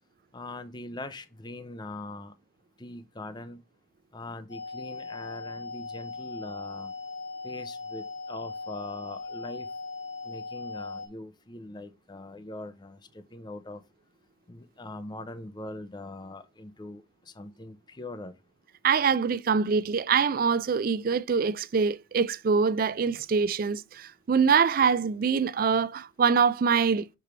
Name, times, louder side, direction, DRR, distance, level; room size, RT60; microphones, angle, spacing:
voice 1, 0.3-2.3 2.8-3.6 4.1-6.9 7.4-9.7 10.2-13.8 14.5-18.3, left 2 dB, 20° left, 0.5 m, -42 dB
sound 1, 4.5-11.1, left 3 dB, 55° left, 1.7 m, -39 dB
voice 2, 18.8-27.2, right 6 dB, 45° right, 0.3 m, -24 dB
6.8 x 3.2 x 4.4 m
head